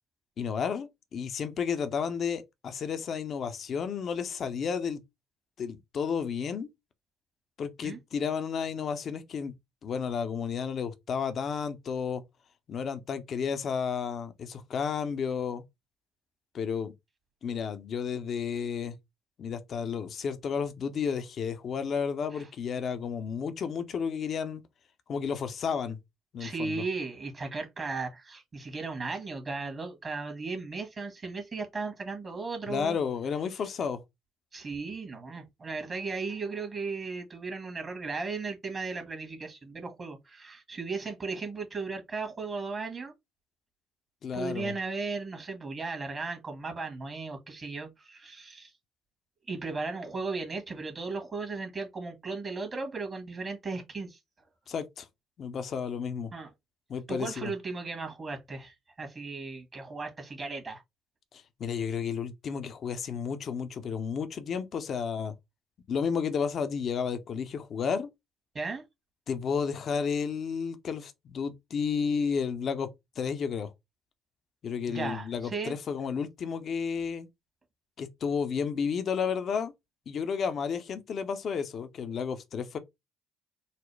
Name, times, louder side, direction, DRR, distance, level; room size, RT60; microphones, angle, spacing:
voice 1, 0.4-5.0 5.6-6.7 7.6-9.5 9.8-12.2 12.7-15.6 16.5-16.9 17.4-18.9 19.4-24.6 25.1-26.0 26.3-26.8 32.7-34.0 44.2-44.8 54.7-55.1 55.4-56.3 56.9-57.5 61.3-65.3 65.9-68.1 69.3-73.7 74.6-77.3 78.0-79.7 80.1-82.8, left 6 dB, 55° left, 0.7 m, -32 dB
voice 2, 26.4-33.0 34.5-43.1 44.3-48.7 49.5-54.2 56.3-56.5 57.1-60.8 68.5-68.8 74.9-75.8, right 4 dB, 40° right, 1.5 m, -36 dB
4.0 x 2.1 x 3.3 m
hypercardioid pair, 55°, 0 cm